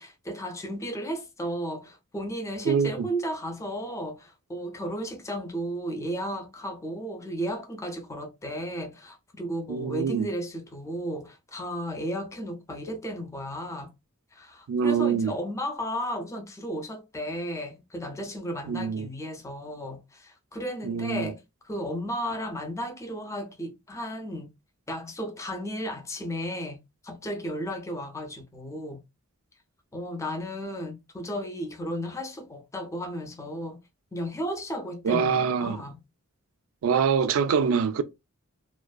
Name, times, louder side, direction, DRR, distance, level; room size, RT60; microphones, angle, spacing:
voice 1, 0.0-13.9 14.3-24.5 24.9-26.8 27.0-29.0 29.9-33.8 34.1-36.0, equal, 15° left, 0.4 m, -34 dB
voice 2, 2.7-3.1 9.7-10.3 14.7-15.3 18.7-19.1 20.8-21.3 35.0-35.8 36.8-38.0, right 6 dB, 65° right, 0.3 m, -25 dB
2.5 x 2.1 x 2.3 m
head